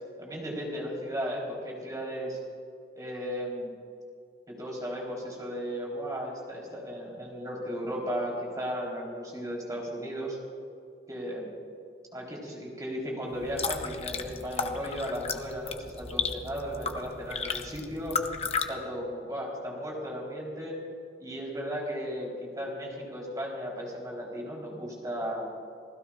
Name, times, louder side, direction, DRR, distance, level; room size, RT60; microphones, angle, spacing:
voice 1, 0.2-2.4 3.0-3.7 4.5-10.4 11.1-11.5 12.1-18.2 18.5-20.8 21.2-25.5, equal, 20° right, -3 dB, 3.9 m, -35 dB
sound 1, 13.3-18.7, left 5 dB, 35° left, 0.8 m, -34 dB
28.5 x 16.0 x 2.5 m, 2.4 s
head